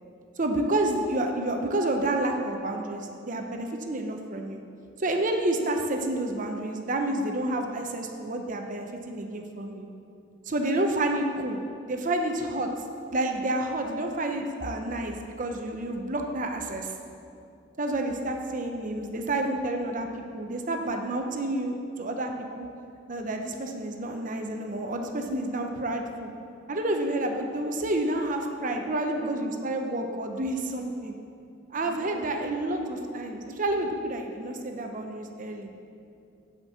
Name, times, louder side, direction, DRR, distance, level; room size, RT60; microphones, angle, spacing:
voice 1, 0.4-4.6 5.0-9.9 10.5-12.7 13.1-16.9 17.8-20.1 20.3-22.7 23.1-26.3 26.7-31.2 31.7-35.7, right 1 dB, 45° right, 3 dB, 0.8 m, -29 dB
voice 2, 17.2-17.8 28.8-29.6 31.3-32.7 35.5-36.5, left 1 dB, 75° left, -1 dB, 1.5 m, -47 dB
8.7 x 5.3 x 7.1 m, 2.5 s
head